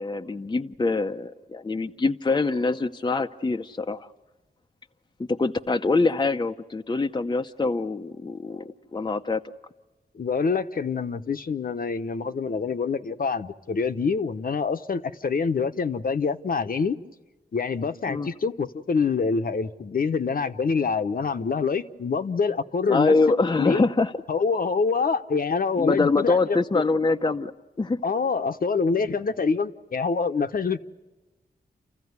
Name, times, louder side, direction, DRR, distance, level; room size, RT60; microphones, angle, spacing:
voice 1, 0.0-4.1 5.2-9.4 18.1-18.3 22.9-24.1 25.8-27.5 27.8-28.0, left 3 dB, 25° left, 6 dB, 0.7 m, -24 dB
voice 2, 10.1-17.0 17.5-23.1 23.6-23.8 24.3-26.8 28.0-30.8, left 5 dB, 55° left, 8 dB, 1.0 m, -26 dB
29.0 x 15.0 x 9.6 m, 1.1 s
wide cardioid pair, 95°, 18 cm